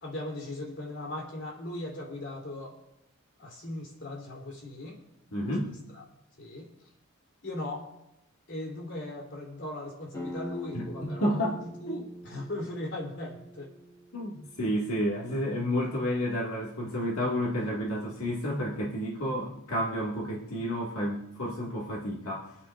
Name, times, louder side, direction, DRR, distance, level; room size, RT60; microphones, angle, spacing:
voice 1, 0.0-2.7 3.4-5.0 5.6-6.0 6.4-6.7 7.4-7.9 8.5-13.7, left 1 dB, 60° left, -1 dB, 3.3 m, -38 dB
voice 2, 5.3-5.7 10.7-11.6 11.9-12.0 14.1-22.6, equal, 85° left, -4 dB, 2.0 m, -31 dB
sound 1, 10.1-15.5, equal, 15° left, 2.9 m, -44 dB
26.5 x 9.9 x 2.5 m, 0.88 s
head